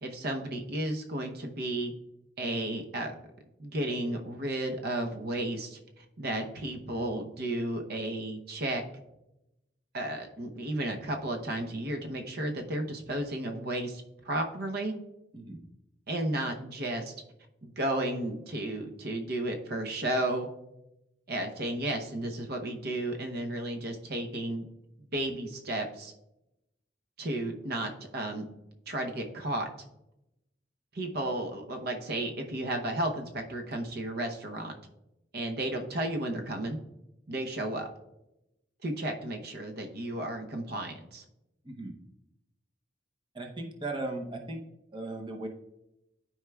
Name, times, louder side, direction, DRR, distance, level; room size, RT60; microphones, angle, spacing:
voice 1, 0.0-1.9 2.4-3.1 3.6-8.8 9.9-15.0 16.1-17.1 17.6-20.5 21.3-24.7 25.0-26.1 27.2-28.5 28.9-29.7 30.9-34.7 35.3-36.8 37.3-37.9 38.8-41.2, right 1 dB, 60° right, 4 dB, 0.8 m, -33 dB
voice 2, 41.6-41.9 43.3-44.6 44.9-45.5, right 2 dB, 30° right, 2 dB, 0.8 m, -37 dB
12.5 x 4.7 x 2.3 m, 0.89 s
head